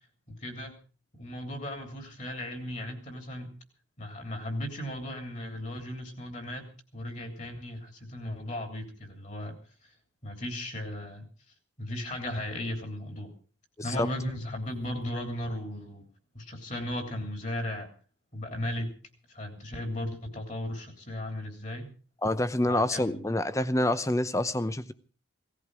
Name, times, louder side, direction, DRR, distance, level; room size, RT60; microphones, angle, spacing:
voice 1, 0.3-0.8 1.1-3.5 4.0-6.7 6.9-9.6 9.8-9.9 10.2-11.3 11.8-13.3 13.8-16.0 16.3-17.9 18.3-19.0 19.3-21.9 22.6-23.2, left 1 dB, 35° left, 5 dB, 3.4 m, -36 dB
voice 2, 22.2-24.9, left 1 dB, 15° left, 14 dB, 0.7 m, -27 dB
18.0 x 14.5 x 4.9 m, 0.37 s
head